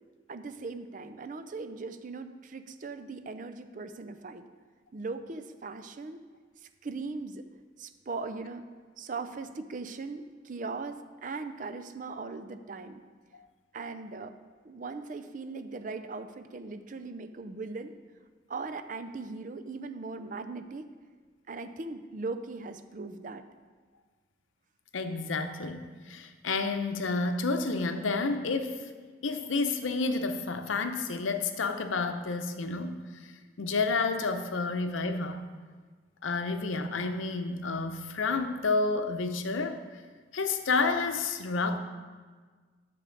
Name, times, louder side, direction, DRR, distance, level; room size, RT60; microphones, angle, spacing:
voice 1, 0.3-4.4 4.9-6.2 6.8-7.4 7.8-8.6 9.0-13.0 13.7-14.3 14.6-17.9 18.5-20.9 21.5-23.4, right 3 dB, 45° right, 9 dB, 0.5 m, -39 dB
voice 2, 24.9-28.9 29.2-33.0 33.6-35.5 36.2-39.8 40.3-41.8, left 3 dB, 90° left, 8 dB, 0.7 m, -30 dB
11.0 x 6.7 x 3.9 m, 1.5 s
head